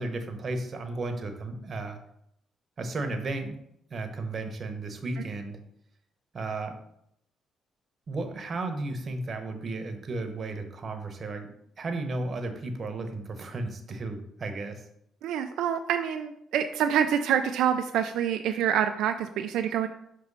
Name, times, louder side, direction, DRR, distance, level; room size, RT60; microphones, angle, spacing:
voice 1, 0.0-2.0 2.8-3.6 3.9-5.6 6.3-6.8 8.1-11.5 11.8-14.9, right 2 dB, 45° right, 6 dB, 1.0 m, -34 dB
voice 2, 15.2-19.9, right 9 dB, 85° right, 6 dB, 0.3 m, -26 dB
6.0 x 3.0 x 5.4 m, 0.75 s
cardioid pair, 90°, 0 cm